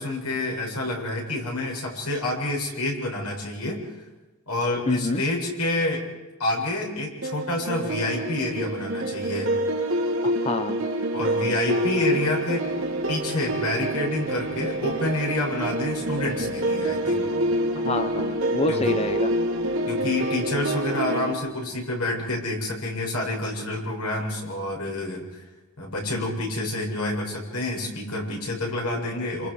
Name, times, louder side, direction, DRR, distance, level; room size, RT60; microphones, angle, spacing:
voice 1, 0.0-3.9 4.5-6.0 6.4-9.5 11.1-12.7 13.1-17.3 18.7-18.9 19.9-25.4 25.8-29.5, left 2 dB, 90° left, -1 dB, 7.5 m, -28 dB
voice 2, 4.9-5.2 10.2-10.9 17.8-19.3, left 2 dB, 30° left, 9 dB, 0.9 m, -27 dB
sound 1, 7.2-21.3, right 1 dB, 65° right, 2.9 m, -27 dB
sound 2, 11.7-21.0, equal, 25° right, 6.5 m, -44 dB
28.5 x 27.5 x 5.0 m, 1.1 s
head